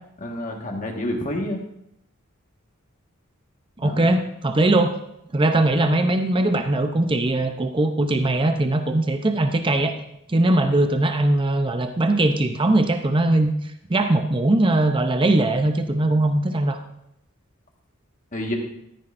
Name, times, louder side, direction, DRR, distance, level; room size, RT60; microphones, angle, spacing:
voice 1, 0.2-1.6 3.8-4.0 18.3-18.6, left 1 dB, 40° left, 1 dB, 1.6 m, -28 dB
voice 2, 3.8-4.9 5.3-9.9 10.3-13.5 13.9-16.8, right 2 dB, 25° right, 6 dB, 0.6 m, -20 dB
13.5 x 10.5 x 2.6 m, 0.78 s
head